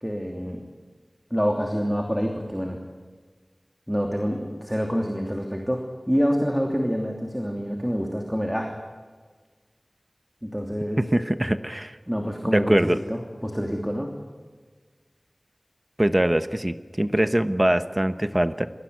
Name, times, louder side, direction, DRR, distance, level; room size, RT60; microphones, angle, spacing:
voice 1, 0.0-0.6 1.3-2.8 3.9-8.7 10.4-11.0 12.1-12.8 13.1-14.1, equal, 5° right, 1 dB, 2.9 m, -27 dB
voice 2, 11.0-12.0 12.5-13.0 16.0-18.7, right 1 dB, 25° right, 11 dB, 1.0 m, -22 dB
23.0 x 16.5 x 9.4 m, 1.5 s
wide cardioid pair, 45°, 0 cm